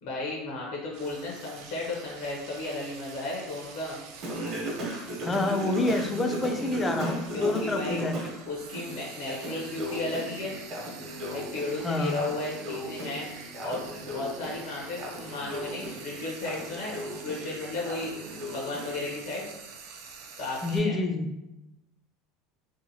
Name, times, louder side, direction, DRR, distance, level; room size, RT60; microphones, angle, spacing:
voice 1, 0.0-4.0 7.3-8.0 8.5-10.5 11.3-13.3 13.6-18.1 18.5-19.5 20.4-21.0, left 2 dB, 75° left, -3 dB, 0.7 m, -34 dB
Frying (food), 0.9-20.8, right 5 dB, 65° right, 0.4 m, -47 dB
Singing, 4.2-8.4 8.7-19.1, right 1 dB, 45° right, 0.8 m, -37 dB
voice 2, 5.2-8.1 11.8-12.2 20.6-21.3, left 2 dB, 15° left, 5 dB, 0.3 m, -27 dB
2.7 x 2.2 x 2.7 m, 0.93 s
supercardioid pair, 135°, 0 cm